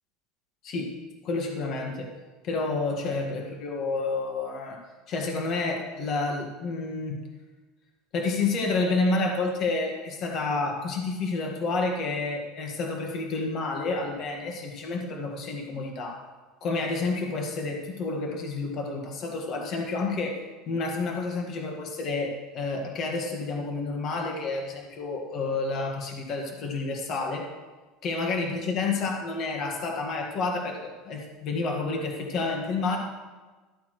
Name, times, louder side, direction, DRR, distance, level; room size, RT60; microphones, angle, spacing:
voice 1, 0.6-0.9 1.2-2.1 2.4-4.8 5.1-7.2 8.1-16.2 16.6-20.4 20.7-27.5 28.0-33.0, left 3 dB, 45° left, 1 dB, 1.7 m, -29 dB
13.5 x 8.4 x 3.2 m, 1.3 s
supercardioid pair, 140°, 0 cm